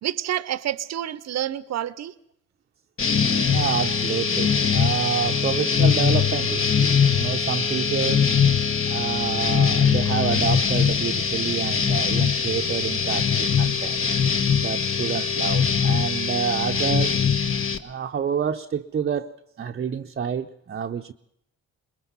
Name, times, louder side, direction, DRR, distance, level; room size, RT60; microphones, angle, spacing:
voice 1, 0.0-2.1, right 11 dB, 60° right, 0.8 m, -28 dB
sound 1, 3.0-17.8, left 6 dB, 45° left, 1.4 m, -22 dB
voice 2, 3.5-8.3 8.9-14.0 14.6-17.2 17.8-21.1, right 7 dB, 35° right, 0.7 m, -28 dB
21.5 x 21.5 x 5.6 m
cardioid pair, 90°, 30 cm